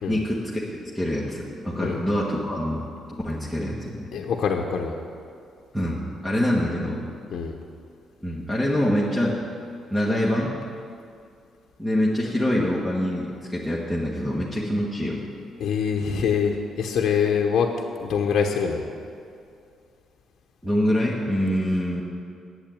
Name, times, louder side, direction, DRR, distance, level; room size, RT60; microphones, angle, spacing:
voice 1, 0.1-0.6 0.9-2.8 3.2-4.1 5.7-7.0 8.2-9.4 9.9-10.5 11.8-15.2 20.6-22.0, equal, 5° right, -5 dB, 1.6 m, -25 dB
voice 2, 4.1-5.0 7.3-7.6 15.6-17.7 18.0-18.8, left 6 dB, 65° left, 1 dB, 0.9 m, -24 dB
8.7 x 7.8 x 8.6 m, 2.4 s
cardioid pair, 90°, 0 cm